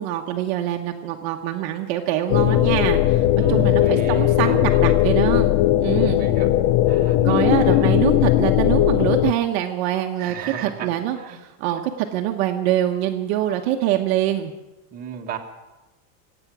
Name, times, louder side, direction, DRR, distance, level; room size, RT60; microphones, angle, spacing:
voice 1, 0.0-5.5 5.8-6.2 7.2-10.3 10.6-14.5, right 12 dB, 45° right, 3 dB, 1.0 m, -24 dB
sound 1, 2.3-9.3, left 14 dB, 50° left, 0.5 m, -18 dB
voice 2, 3.3-4.9 5.9-6.5 6.9-7.2 7.7-7.9 10.2-10.9 11.2-11.4 11.7-11.8 14.9-15.4, right 7 dB, 20° right, 0 dB, 1.4 m, -34 dB
25.5 x 9.0 x 6.0 m, 1.1 s
supercardioid pair, 175°, 45 cm